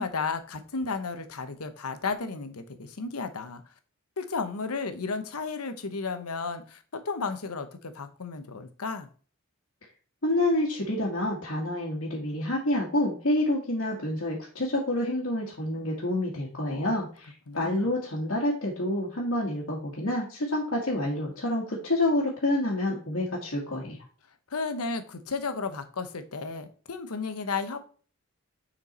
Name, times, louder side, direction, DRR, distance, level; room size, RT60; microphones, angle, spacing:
voice 1, 0.0-3.6 4.2-9.1 16.7-17.1 17.5-17.9 24.5-27.8, left 4 dB, 85° left, 9 dB, 0.9 m, -33 dB
voice 2, 10.2-24.0, left 1 dB, 65° left, -5 dB, 1.6 m, -28 dB
6.7 x 4.5 x 4.2 m, 0.40 s
head